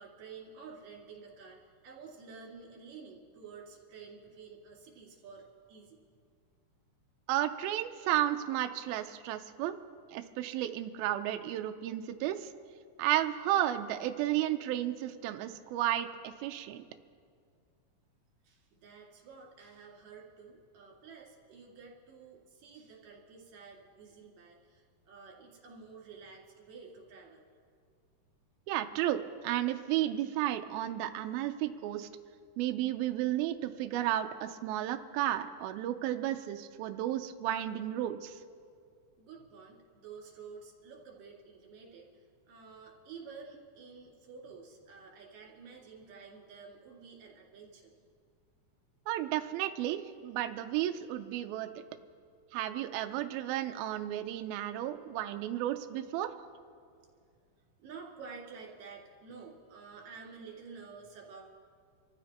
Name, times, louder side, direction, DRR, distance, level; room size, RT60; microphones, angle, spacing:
voice 1, 0.0-6.0 18.4-27.5 39.2-42.1 42.5-47.9 57.8-61.4, right 5 dB, 65° right, -2 dB, 3.9 m, -50 dB
voice 2, 7.3-9.8 10.1-12.5 13.0-16.9 28.7-32.1 32.6-38.4 49.1-51.7 52.5-56.3, right 13 dB, 80° right, 6 dB, 2.3 m, -33 dB
27.5 x 14.5 x 2.9 m, 2.2 s
omnidirectional pair, 4.5 m